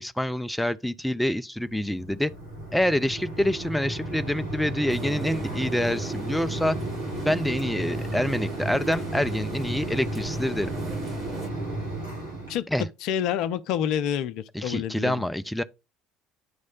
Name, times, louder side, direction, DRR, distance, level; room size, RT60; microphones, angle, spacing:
voice 1, 0.0-2.3 2.7-6.8 7.2-10.7 12.7-12.8 14.5-15.6, left 1 dB, 5° left, 0.5 m, -26 dB
Mechanisms, 1.6-12.6, right 2 dB, 85° right, 2.4 m, -33 dB
sound 1, 4.9-11.5, right 3 dB, 45° right, 2.4 m, -42 dB
voice 2, 12.5-15.2, left 9 dB, 60° left, 0.5 m, -28 dB
9.4 x 3.2 x 5.3 m
hypercardioid pair, 60°, 0 cm